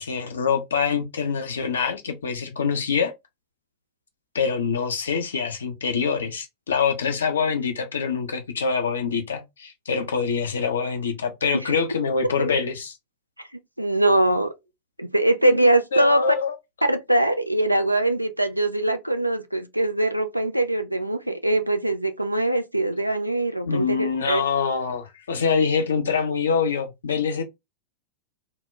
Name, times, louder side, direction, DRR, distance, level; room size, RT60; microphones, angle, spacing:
voice 1, 0.0-3.1 4.3-13.0 15.4-15.7 15.9-16.5 23.7-27.4, left 5 dB, 70° left, 0.5 m, -25 dB
voice 2, 13.8-14.5 15.0-16.2 16.9-24.4, right 1 dB, 90° right, 0.4 m, -22 dB
2.1 x 2.0 x 3.3 m
figure-of-eight pair, 90°, 0 cm